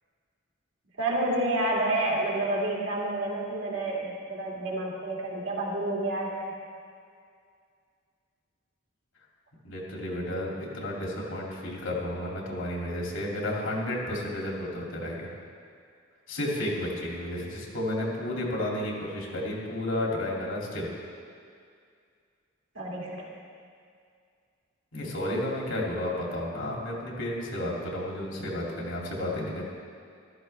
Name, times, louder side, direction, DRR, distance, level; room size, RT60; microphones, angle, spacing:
voice 1, 1.0-6.5 22.8-23.3, right 1 dB, 65° right, -4 dB, 2.5 m, -29 dB
voice 2, 9.6-15.3 16.3-20.9 24.9-29.7, left 1 dB, 75° left, -3 dB, 2.8 m, -32 dB
14.5 x 13.0 x 3.4 m, 2.3 s
head